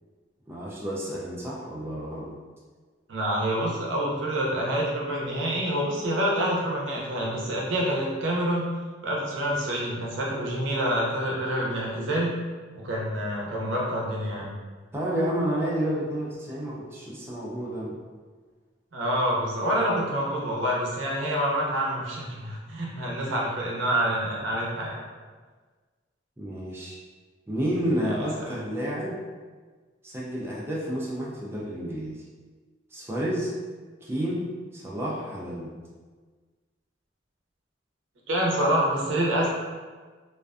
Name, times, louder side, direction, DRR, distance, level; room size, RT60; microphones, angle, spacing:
voice 1, 0.5-2.3 14.9-18.0 26.4-27.0 27.5-29.2 30.0-32.2 32.9-33.5 34.0-35.7, equal, 15° right, -5 dB, 0.3 m, -30 dB
voice 2, 3.1-8.7 9.0-12.3 12.7-14.5 18.9-25.0 28.4-28.6 38.3-39.5, right 1 dB, 75° right, -3 dB, 0.5 m, -27 dB
2.4 x 2.2 x 2.4 m, 1.4 s
head